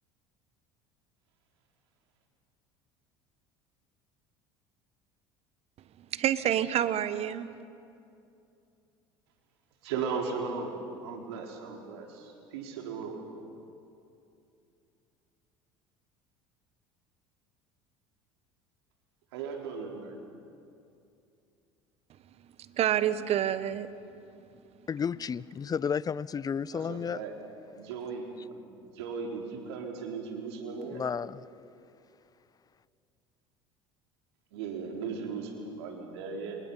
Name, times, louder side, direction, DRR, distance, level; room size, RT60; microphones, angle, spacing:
voice 1, 6.0-7.5 22.6-23.9, right 11 dB, 50° right, 14 dB, 1.2 m, -28 dB
voice 2, 9.8-13.2 19.3-20.2 26.7-27.3 27.8-28.3 28.5-31.0 34.5-36.6, right 5 dB, 80° right, 1 dB, 4.1 m, -37 dB
voice 3, 24.9-27.2 30.9-31.4, left 7 dB, 30° left, 21 dB, 0.6 m, -32 dB
28.5 x 27.5 x 5.6 m, 2.6 s
hypercardioid pair, 75°, 13 cm